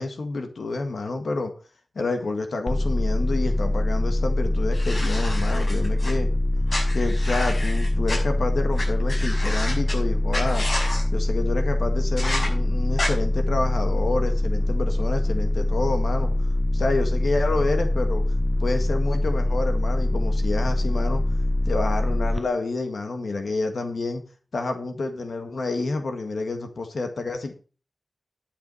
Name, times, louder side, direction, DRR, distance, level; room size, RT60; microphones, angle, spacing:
voice 1, 0.0-1.5 1.9-6.3 6.9-10.7 11.1-16.3 16.7-18.2 18.6-21.2 21.6-24.2 24.5-27.5, left 3 dB, 85° left, 6 dB, 1.6 m, -28 dB
sound 1, 2.7-22.4, left 1 dB, ahead, 1.1 m, -23 dB
sound 2, 4.7-6.1 6.7-8.2 8.8-8.9 9.1-9.9 10.3-11.0 12.2-12.5 13.0-13.1, left 1 dB, 70° left, 6.2 m, -30 dB
12.0 x 6.9 x 5.5 m, 0.37 s
wide cardioid pair, 55°, 0 cm